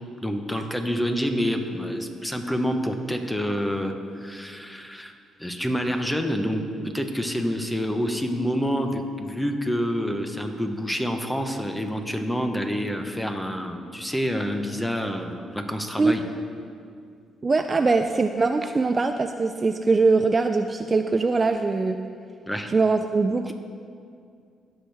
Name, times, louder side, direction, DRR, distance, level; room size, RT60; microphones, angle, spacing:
voice 1, 0.2-5.1 5.4-6.6 6.9-16.2 22.5-22.7 23.5-23.6, equal, 5° left, 5 dB, 1.0 m, -27 dB
voice 2, 17.4-22.0 22.7-23.5, right 3 dB, 30° right, 7 dB, 0.4 m, -22 dB
18.0 x 6.4 x 3.5 m, 2.3 s
cardioid pair, 90°, 0 cm